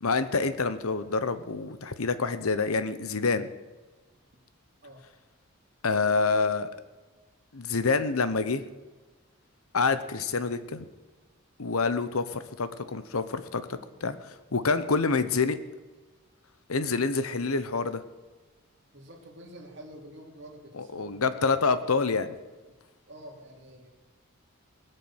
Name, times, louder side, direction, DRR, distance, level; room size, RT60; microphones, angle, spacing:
voice 1, 0.0-3.5 5.8-6.7 7.5-8.6 9.7-10.8 11.6-15.6 16.7-18.0 20.7-22.3, left 4 dB, 85° left, 12 dB, 1.0 m, -27 dB
voice 2, 18.9-21.5 23.1-23.9, right 1 dB, 55° right, 0 dB, 3.1 m, -48 dB
20.0 x 6.7 x 8.9 m, 1.3 s
head